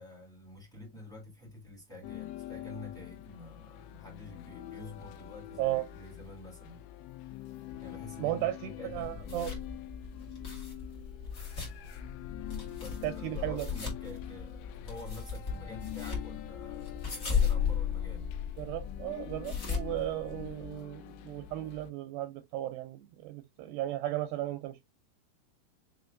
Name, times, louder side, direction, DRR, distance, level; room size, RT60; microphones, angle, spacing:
voice 1, 0.0-6.8 7.8-9.4 12.8-18.3, left 1 dB, ahead, 1.0 m, -48 dB
sound 1, 2.0-21.9, left 15 dB, 85° left, 2.8 m, -46 dB
voice 2, 8.2-9.5 13.0-13.7 18.6-24.9, right 14 dB, 85° right, 2.6 m, -35 dB
sound 2, 8.9-20.8, left 6 dB, 50° left, 1.0 m, -36 dB
6.4 x 3.2 x 2.4 m
omnidirectional pair, 5.0 m